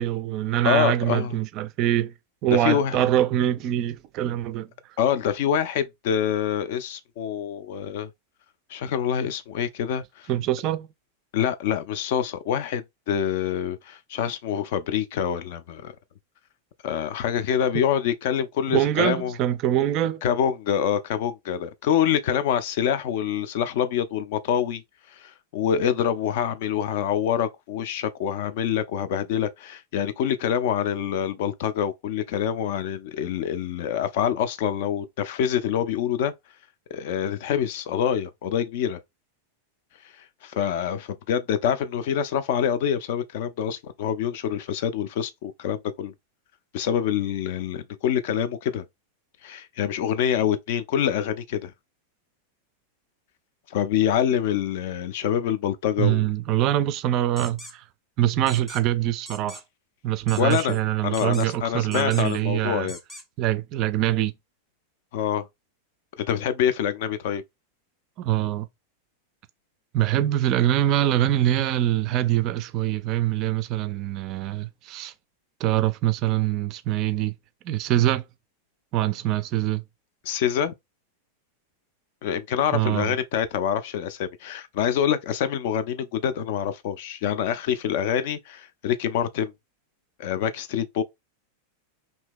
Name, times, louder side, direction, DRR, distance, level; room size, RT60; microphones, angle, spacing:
voice 1, 0.0-2.1 2.4-4.7 10.3-10.9 17.7-17.8 18.7-20.2 56.0-57.8 58.2-59.6 60.0-62.9 63.4-64.3 68.2-68.7 69.9-75.1 75.6-77.3 77.6-78.2 78.9-79.8 82.7-83.2, right 13 dB, 40° right, 0.3 m, -24 dB
voice 2, 0.6-1.4 2.5-3.0 5.0-8.1 8.7-10.3 11.3-15.9 16.8-19.3 20.2-24.8 25.1-36.3 36.9-39.0 40.4-46.1 46.7-48.8 49.4-51.7 53.7-56.3 60.4-63.0 65.1-65.4 66.2-67.4 80.2-80.7 82.2-89.5 90.2-91.0, left 9 dB, 50° left, 0.4 m, -26 dB
sound 1, 57.4-57.7 58.5-58.8 59.3-59.6 60.3-60.8 61.1-61.6 61.9-62.4 62.9-63.2, equal, 5° left, 0.6 m, -42 dB
2.8 x 2.6 x 3.5 m
figure-of-eight pair, 90°, 0 cm